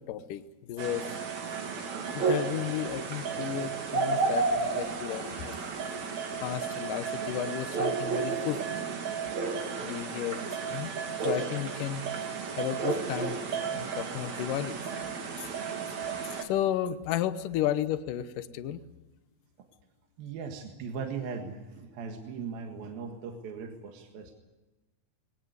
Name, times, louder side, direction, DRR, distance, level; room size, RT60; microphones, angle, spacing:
voice 1, 0.1-1.1 2.1-5.6 6.4-8.6 9.8-10.9 11.2-12.0 12.6-13.4 13.7-14.8 15.4-15.5 16.4-18.8, left 11 dB, 70° left, 12 dB, 2.3 m, -33 dB
sound 1, 0.8-16.4, right 5 dB, 50° right, 3.3 m, -32 dB
voice 2, 20.2-24.3, right 5 dB, 70° right, 3 dB, 3.5 m, -39 dB
21.0 x 19.0 x 9.5 m, 1.1 s
omnidirectional pair, 4.4 m